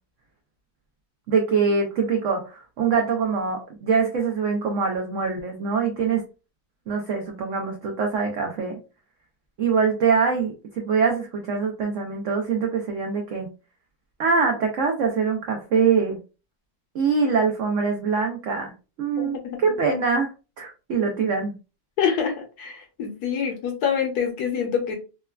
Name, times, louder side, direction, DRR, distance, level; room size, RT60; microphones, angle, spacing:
voice 1, 1.3-6.2 6.9-8.8 9.6-13.5 14.2-16.2 16.9-18.7 19.0-20.3 20.6-21.5, right 5 dB, 90° right, 2 dB, 0.6 m, -23 dB
voice 2, 19.2-19.7 22.0-24.9, left 7 dB, 70° left, 2 dB, 1.0 m, -26 dB
3.2 x 2.2 x 2.2 m, 0.31 s
omnidirectional pair, 2.0 m